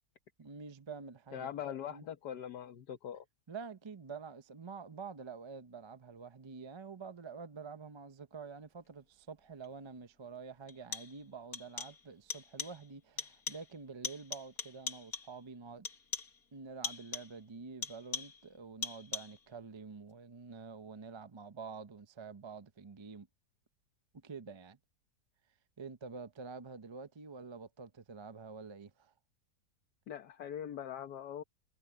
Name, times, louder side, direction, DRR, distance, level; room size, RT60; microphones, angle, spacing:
voice 1, 0.4-1.5 1.9-2.0 3.5-15.9 16.5-23.3 24.1-24.8 25.8-29.1, right 5 dB, 35° right, 0.4 m, -48 dB
voice 2, 1.3-3.2 30.1-31.4, left 9 dB, 80° left, 1.6 m, -42 dB
sound 1, 9.6-9.7 10.7-11.3 11.5-12.1 12.3-12.9 13.2-13.8 14.0-15.4 15.9-16.4 16.8-17.4 17.8-18.5 18.8-19.5, left 5 dB, 60° left, 2.2 m, -42 dB
omnidirectional pair, 1.8 m